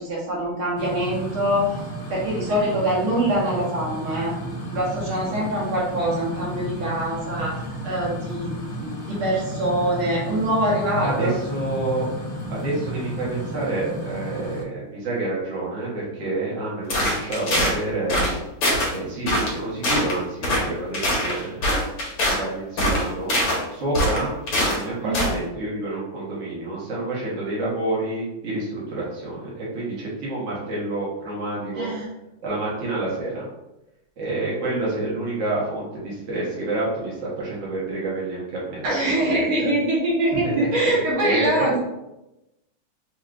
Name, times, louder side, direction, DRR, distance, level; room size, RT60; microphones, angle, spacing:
voice 1, 0.0-1.8 2.1-4.3 4.7-11.3 25.0-25.2 31.7-32.1 38.8-41.8, right 1 dB, 70° right, -5 dB, 1.9 m, -24 dB
sound 1, 0.8-14.6, right 1 dB, 65° left, 1.0 m, -33 dB
voice 2, 11.0-12.1 12.5-18.2 18.9-21.6 22.3-31.9 32.4-33.5 34.2-39.7 40.4-41.8, right 2 dB, 45° right, -7 dB, 1.3 m, -28 dB
sound 2, 16.9-17.8 18.1-18.3 18.6-18.9 19.3-19.6 19.8-20.1 20.4-20.6 20.9-22.4 22.8-23.6 23.9-24.8 25.1-25.3, left 1 dB, 80° left, 1.9 m, -22 dB
4.7 x 2.8 x 2.4 m, 0.94 s
omnidirectional pair, 2.4 m